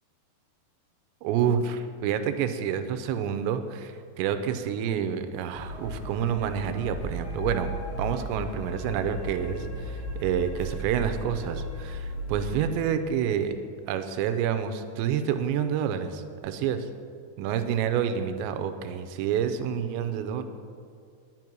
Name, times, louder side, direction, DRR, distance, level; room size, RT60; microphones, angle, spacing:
voice 1, 1.2-13.6 13.9-16.8 17.4-20.4, right 8 dB, 85° right, 9 dB, 2.8 m, -28 dB
sound 1, 5.5-12.5, equal, 85° left, 5.4 m, -35 dB
10.5 x 9.5 x 6.1 m, 2.3 s
omnidirectional pair, 5.2 m